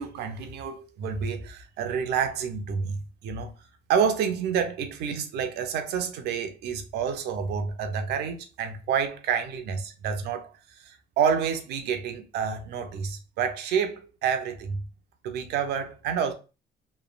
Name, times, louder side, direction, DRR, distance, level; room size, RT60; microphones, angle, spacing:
voice 1, 0.0-3.5 3.9-10.5 10.8-14.8 15.2-16.3, right 7 dB, 80° right, 0.6 m, -28 dB
3.1 x 2.3 x 2.4 m
cardioid pair, 110°, 17 cm